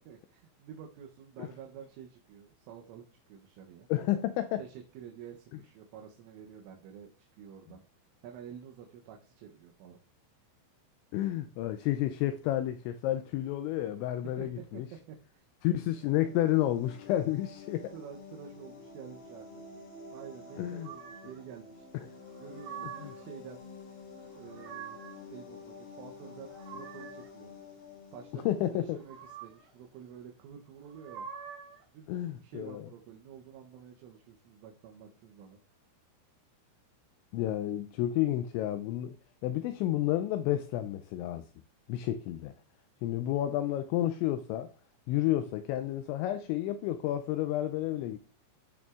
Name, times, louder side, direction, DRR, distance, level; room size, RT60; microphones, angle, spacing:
voice 1, 0.0-3.9 4.6-7.8 8.2-10.0 14.4-15.4 17.9-19.6 20.1-21.9 22.4-23.6 24.3-25.0 25.3-27.5 28.1-31.3 31.9-35.6, right 8 dB, 85° right, 3.4 m, -49 dB
voice 2, 3.9-4.6 11.1-14.9 15.6-17.9 20.6-20.9 23.0-23.1 28.3-29.0 32.1-32.8 37.3-39.2 39.4-41.4 41.9-42.5 43.0-44.7 45.1-48.2, left 13 dB, 85° left, 2.7 m, -30 dB
sound 1, 15.9-29.4, left 4 dB, 55° left, 3.3 m, -49 dB
sound 2, 20.8-21.4 22.3-23.3 24.2-25.2 26.2-27.3 28.8-29.7 30.8-31.8, right 8 dB, 70° right, 2.0 m, -46 dB
15.0 x 6.3 x 2.4 m
omnidirectional pair, 5.6 m